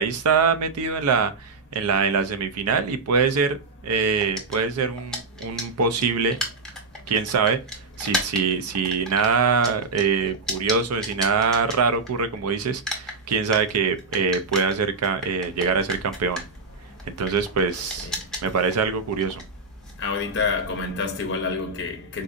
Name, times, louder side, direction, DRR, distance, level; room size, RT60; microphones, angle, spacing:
voice 1, 0.0-3.6 3.8-6.4 7.1-7.6 8.0-16.5 17.1-18.1 18.4-19.4, right 5 dB, 85° right, 0.4 m, -23 dB
sound 1, 4.2-12.4 12.6-20.9, left 1 dB, 5° left, 0.7 m, -34 dB
voice 2, 20.0-22.2, left 4 dB, 50° left, 0.6 m, -27 dB
3.9 x 2.5 x 2.4 m
head